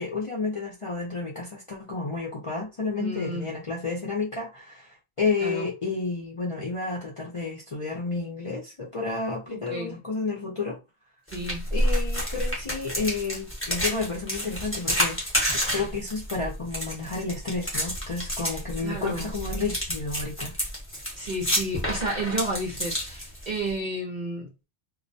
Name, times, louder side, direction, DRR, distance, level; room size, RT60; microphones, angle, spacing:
voice 1, 0.0-10.8 11.7-15.2 15.7-20.5, left 4 dB, 40° left, 0.5 m, -31 dB
voice 2, 3.0-3.5 5.4-5.7 9.5-10.0 11.3-11.7 18.8-19.3 21.2-24.5, right 1 dB, 50° right, 0.6 m, -31 dB
sound 1, 11.3-23.7, equal, 15° left, 0.8 m, -29 dB
2.2 x 2.1 x 2.6 m
omnidirectional pair, 1.2 m